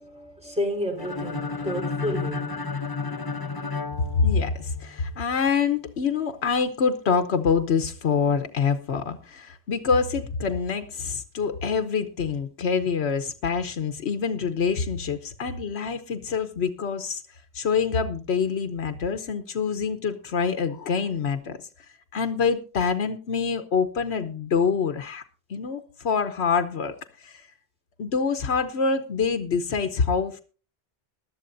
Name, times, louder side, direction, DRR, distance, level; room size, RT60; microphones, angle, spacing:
voice 1, 0.0-2.5, equal, 5° right, 4.3 m, -31 dB
sound 1, 1.0-4.9, left 4 dB, 25° left, 0.8 m, -32 dB
voice 2, 4.2-21.6 22.1-25.2 25.5-27.5 28.0-30.4, left 5 dB, 90° left, 1.2 m, -26 dB
20.0 x 12.5 x 2.6 m
omnidirectional pair, 1.1 m